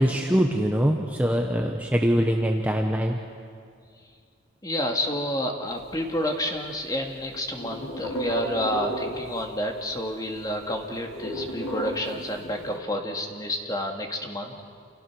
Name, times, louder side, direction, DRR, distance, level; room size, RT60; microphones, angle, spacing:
voice 1, 0.0-3.2, equal, 5° right, 1 dB, 1.1 m, -23 dB
voice 2, 4.6-14.6, left 1 dB, 20° left, 2 dB, 2.3 m, -29 dB
sound 1, 5.7-6.8 7.1-9.7 10.0-10.1 10.3-12.8, right 1 dB, 85° left, 3.7 m, -34 dB
29.5 x 27.5 x 6.3 m, 2.2 s
head